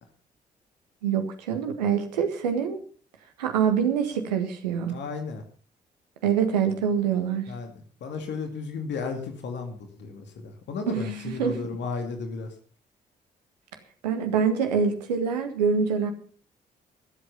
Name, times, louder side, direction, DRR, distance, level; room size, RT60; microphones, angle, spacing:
voice 1, 1.0-2.8 3.4-4.9 6.2-7.4 10.9-11.6 14.0-16.1, right 7 dB, 80° right, 7 dB, 1.6 m, -25 dB
voice 2, 4.9-5.4 7.5-7.7 8.0-12.5, left 4 dB, 60° left, 5 dB, 2.3 m, -34 dB
21.0 x 8.2 x 5.6 m, 0.43 s
figure-of-eight pair, 40°, 21 cm